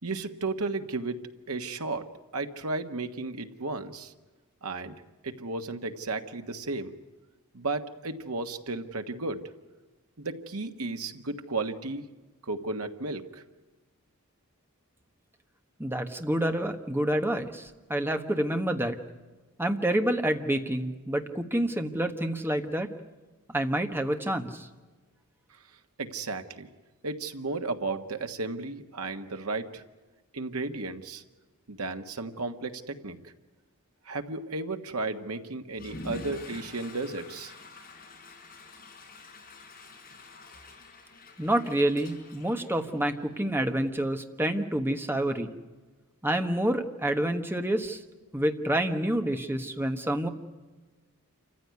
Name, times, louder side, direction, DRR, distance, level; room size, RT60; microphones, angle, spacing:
voice 1, 0.0-1.2 1.5-2.1 2.3-4.1 4.6-4.9 5.2-6.9 7.5-9.4 10.2-12.0 12.4-13.4 26.0-26.7 27.0-29.8 30.3-31.2 31.7-33.3 34.0-37.5, right 3 dB, 80° right, 7 dB, 1.5 m, -34 dB
voice 2, 15.8-19.0 19.6-22.9 23.5-24.7 41.4-45.5 46.2-48.0 48.3-50.3, right 1 dB, 10° right, 6 dB, 1.3 m, -28 dB
Water / Toilet flush, 35.7-43.4, left 2 dB, 40° left, 5.2 m, -46 dB
27.5 x 15.0 x 9.5 m, 1.2 s
head